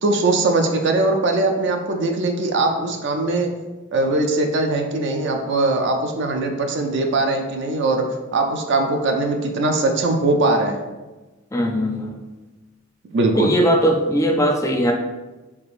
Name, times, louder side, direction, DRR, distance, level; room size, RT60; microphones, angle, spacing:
voice 1, 0.0-3.5 3.9-8.1 8.3-10.8 13.1-13.5, right 2 dB, 60° right, 4 dB, 0.4 m, -21 dB
voice 2, 11.5-12.2 13.3-14.9, equal, 15° left, 2 dB, 0.4 m, -19 dB
3.6 x 3.4 x 2.5 m, 1.2 s
head